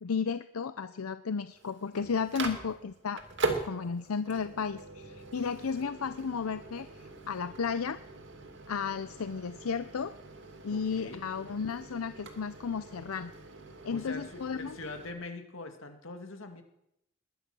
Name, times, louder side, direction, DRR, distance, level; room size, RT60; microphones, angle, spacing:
voice 1, 0.0-3.2 3.5-8.0 8.7-10.1 10.6-13.3 13.8-14.8, left 6 dB, 90° left, 12 dB, 0.6 m, -34 dB
Microwave oven, 1.5-15.1, right 3 dB, 55° right, 2.3 m, -41 dB
voice 2, 10.7-11.2 13.9-16.6, left 3 dB, 65° left, 6 dB, 2.2 m, -43 dB
20.0 x 11.0 x 6.1 m, 0.80 s
head